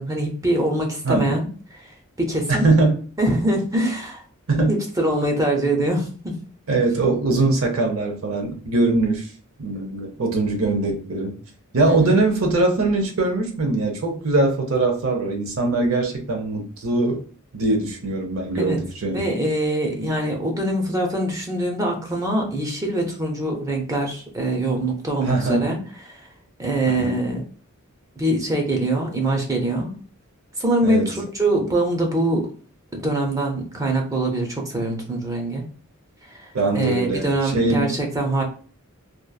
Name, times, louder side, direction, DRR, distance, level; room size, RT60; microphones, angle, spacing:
voice 1, 0.0-1.5 1.7-1.8 2.2-2.7 3.2-4.2 4.7-6.4 11.8-12.2 18.6-18.8 19.1-25.8 26.1-26.2 26.6-27.4 28.2-30.0 30.6-32.5 32.9-35.6 36.4-36.5 36.7-38.4, right 1 dB, 15° right, 1 dB, 0.5 m, -23 dB
voice 2, 1.0-1.4 2.5-3.1 4.5-4.8 6.7-9.3 9.6-11.4 11.7-17.2 17.5-19.3 25.2-25.8 26.9-27.3 30.8-31.2 36.5-37.9, right 2 dB, 75° right, 3 dB, 0.7 m, -22 dB
2.9 x 2.4 x 2.2 m, 0.41 s
head